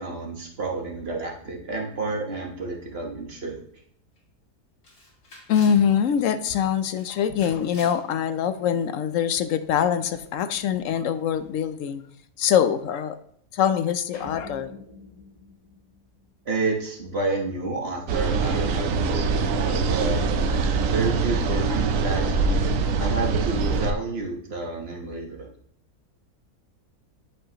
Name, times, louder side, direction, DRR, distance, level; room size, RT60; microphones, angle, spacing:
voice 1, 0.0-3.6 16.4-20.2 20.9-22.7 23.0-25.5, right 3 dB, 45° right, 0 dB, 1.2 m, -30 dB
Camera, 3.8-3.9 4.2-4.3 4.8-5.9 6.3-6.6 6.9-8.0, left 2 dB, 80° left, 2.5 m, -47 dB
voice 2, 5.5-12.0 12.4-13.2 13.5-14.7, left 8 dB, 65° left, 11 dB, 0.8 m, -23 dB
sound 1, 14.1-16.6, left 3 dB, 25° left, 1.5 m, -44 dB
sound 2, 18.1-23.9, right 4 dB, 65° right, 1.0 m, -23 dB
10.0 x 5.5 x 2.9 m, 0.65 s
omnidirectional pair, 1.6 m